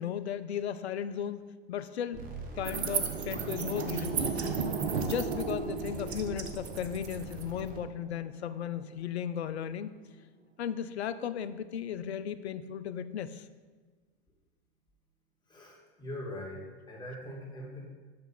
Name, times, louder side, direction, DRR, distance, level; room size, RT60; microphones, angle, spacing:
voice 1, 0.0-2.3 2.6-4.4 5.0-9.9 10.6-13.4, left 9 dB, 80° left, 13 dB, 0.5 m, -35 dB
sound 1, 2.1-7.8, right 3 dB, 25° right, 1.1 m, -44 dB
sound 2, 2.6-9.2, right 5 dB, 80° right, 0.8 m, -35 dB
voice 2, 15.5-17.9, left 1 dB, 15° left, -4 dB, 2.2 m, -42 dB
7.6 x 3.5 x 5.7 m, 1.4 s
hypercardioid pair, 90°, 32 cm